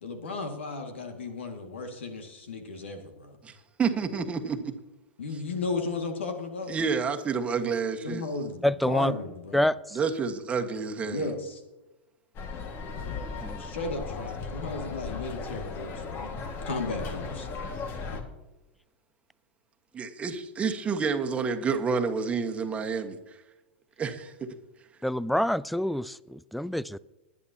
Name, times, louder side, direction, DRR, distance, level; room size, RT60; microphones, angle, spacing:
voice 1, 0.0-3.4 5.2-6.7 7.6-7.7 8.0-9.6 11.0-11.6 13.6-16.3 16.7-17.5, left 3 dB, 75° left, 5 dB, 2.0 m, -35 dB
voice 2, 3.4-4.7 6.7-8.2 9.9-11.3 19.9-23.2 24.0-24.5, right 5 dB, 20° right, 6 dB, 1.4 m, -29 dB
voice 3, 8.6-9.1 9.5-10.0 13.4-13.7 25.0-27.0, left 1 dB, ahead, 21 dB, 0.3 m, -27 dB
sound 1, 12.3-18.2, left 4 dB, 35° left, 1.8 m, -36 dB
19.5 x 10.5 x 2.8 m, 1.0 s
hypercardioid pair, 105°, 6 cm